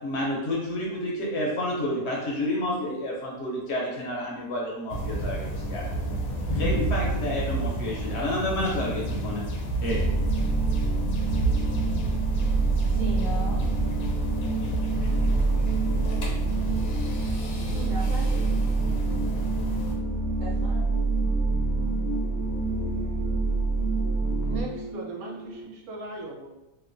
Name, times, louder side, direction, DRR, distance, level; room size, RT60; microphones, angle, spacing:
voice 1, 0.0-5.9 6.5-9.4 9.8-10.0, left 1 dB, 65° left, -3 dB, 0.7 m, -30 dB
sound 1, 4.9-19.9, right 2 dB, 80° left, 1.0 m, -30 dB
sound 2, 9.9-24.6, right 3 dB, 65° right, 1.2 m, -26 dB
voice 2, 12.7-13.7 17.7-18.6 20.4-21.0, equal, 50° right, -6 dB, 0.6 m, -38 dB
sound 3, 13.7-25.6, equal, 5° right, 0.5 m, -40 dB
voice 3, 24.4-26.5, right 2 dB, 85° right, -1 dB, 1.1 m, -39 dB
2.9 x 2.1 x 2.5 m, 0.98 s
omnidirectional pair, 1.5 m